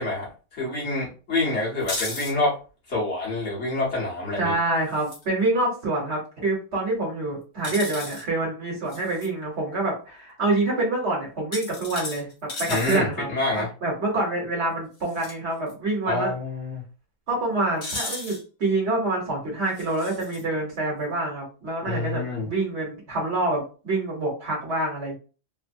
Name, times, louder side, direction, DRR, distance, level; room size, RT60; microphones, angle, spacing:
voice 1, 0.0-2.6 2.9-4.5 12.7-13.7 16.0-16.8 21.8-22.5, left 2 dB, 55° left, -6 dB, 1.4 m, -27 dB
sound 1, 1.8-2.3 4.9-5.2 7.6-8.2 8.9-9.3 11.5-13.0 15.0-15.3 15.7-15.8 17.8-18.4 19.7-20.4, left 2 dB, 90° left, 1.5 m, -34 dB
voice 2, 4.4-12.3 12.6-13.3 13.6-16.3 17.3-25.2, right 2 dB, 55° right, -2 dB, 1.2 m, -26 dB
3.2 x 2.1 x 2.5 m, 0.35 s
omnidirectional pair, 1.5 m